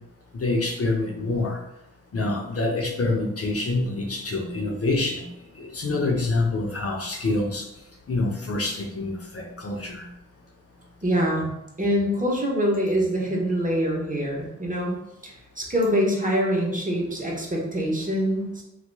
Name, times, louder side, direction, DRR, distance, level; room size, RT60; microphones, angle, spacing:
voice 1, 0.3-1.6 2.1-5.3 5.6-7.7 8.1-10.1, left 2 dB, 45° left, 1 dB, 0.7 m, -26 dB
voice 2, 11.0-11.5 11.8-14.9 15.2-18.6, equal, 25° right, -2 dB, 1.1 m, -24 dB
4.0 x 2.9 x 2.3 m, 0.86 s
cardioid pair, 45°, 33 cm